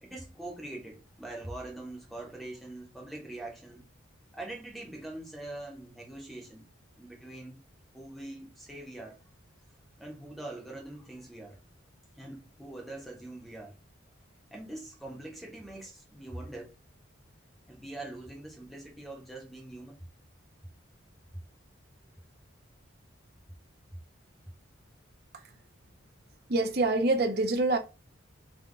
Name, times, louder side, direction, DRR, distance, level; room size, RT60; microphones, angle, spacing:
voice 1, 0.0-3.9 4.3-6.7 7.0-7.7 7.9-9.2 10.0-11.6 12.2-13.8 14.5-16.7 17.7-20.1, right 2 dB, ahead, 0.7 m, -43 dB
voice 2, 26.5-27.8, right 2 dB, 50° right, 0.6 m, -25 dB
3.5 x 2.2 x 3.7 m
head